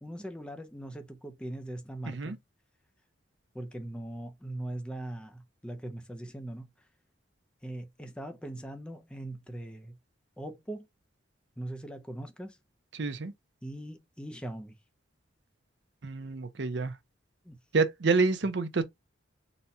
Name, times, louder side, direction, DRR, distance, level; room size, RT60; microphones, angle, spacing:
voice 1, 0.0-2.4 3.5-6.7 7.6-9.9 10.4-10.9 11.6-12.6 13.6-14.7 17.4-17.6, right 1 dB, 5° left, 0.6 m, -40 dB
voice 2, 2.1-2.4 12.9-13.3 16.0-16.9 17.7-18.8, right 4 dB, 60° right, 0.6 m, -28 dB
4.1 x 2.3 x 4.2 m
head